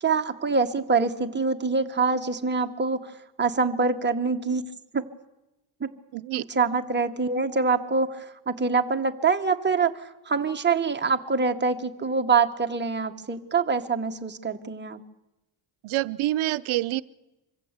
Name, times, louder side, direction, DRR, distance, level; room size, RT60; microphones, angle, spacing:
voice 1, 0.0-4.6 4.9-5.0 5.8-5.9 6.3-15.0, right 4 dB, 25° right, 5 dB, 1.2 m, -25 dB
voice 2, 6.1-6.5 15.8-17.0, right 15 dB, 90° right, 14 dB, 0.7 m, -27 dB
24.5 x 15.5 x 8.1 m, 1.0 s
cardioid pair, 120°, 47 cm